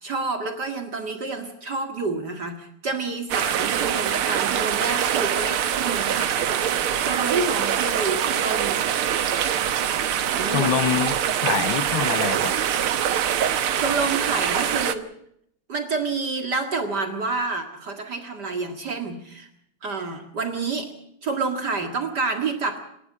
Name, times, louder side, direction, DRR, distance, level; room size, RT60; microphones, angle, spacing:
voice 1, 0.0-8.9 10.2-10.7 13.7-15.1 15.7-19.5 19.8-20.9 21.2-22.8, right 4 dB, 50° right, 6 dB, 2.4 m, -28 dB
sound 1, 3.3-15.0, right 9 dB, 85° right, 2.0 m, -24 dB
voice 2, 10.5-12.5, left 10 dB, 70° left, 15 dB, 1.7 m, -25 dB
28.5 x 12.5 x 8.5 m, 0.73 s
omnidirectional pair, 2.3 m